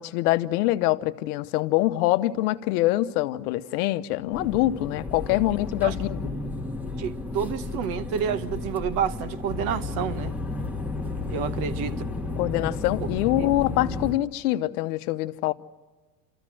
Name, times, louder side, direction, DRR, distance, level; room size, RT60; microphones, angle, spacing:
voice 1, 0.0-6.2 12.4-15.5, left 16 dB, 65° left, 1.0 m, -24 dB
sound 1, 4.3-14.1, left 3 dB, 5° right, 1.5 m, -32 dB
voice 2, 7.0-10.3 11.1-11.9 13.4-13.5, right 8 dB, 45° right, 1.1 m, -29 dB
28.5 x 14.0 x 7.6 m
supercardioid pair, 145°, 50 cm